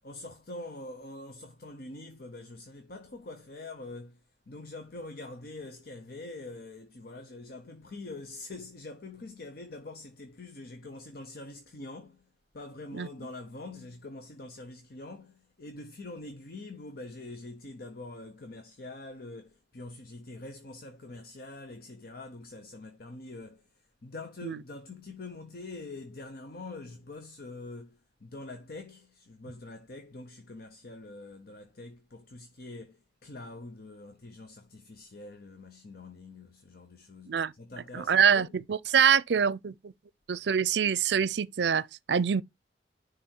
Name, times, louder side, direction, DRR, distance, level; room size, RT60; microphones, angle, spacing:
voice 1, 0.0-4.2 4.5-12.3 12.5-23.6 24.0-38.5, left 2 dB, 60° left, 0.9 m, -44 dB
voice 2, 37.9-39.9 40.3-42.4, right 7 dB, 75° right, 0.5 m, -25 dB
10.0 x 3.4 x 4.4 m
head